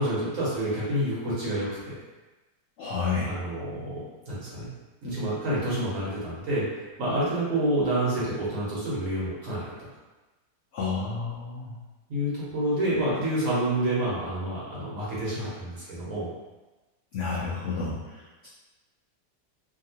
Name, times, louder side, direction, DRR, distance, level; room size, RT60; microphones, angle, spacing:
voice 1, 0.0-2.0 3.3-4.7 5.0-9.7 12.1-16.3, right 1 dB, 55° right, -8 dB, 1.2 m, -28 dB
voice 2, 2.8-3.3 10.7-11.8 17.1-18.5, left 4 dB, 80° left, -6 dB, 0.6 m, -30 dB
2.8 x 2.8 x 2.8 m, 1.1 s
omnidirectional pair, 1.8 m